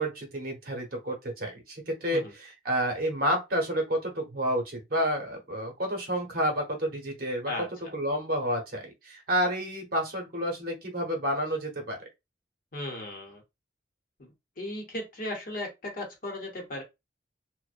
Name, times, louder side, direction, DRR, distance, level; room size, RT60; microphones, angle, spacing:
voice 1, 0.0-7.5 7.9-12.1, equal, 55° right, 0.8 m, -30 dB
voice 2, 12.7-13.4 14.2-14.3 14.6-16.8, left 1 dB, 50° left, 0.8 m, -36 dB
2.5 x 2.1 x 2.4 m
head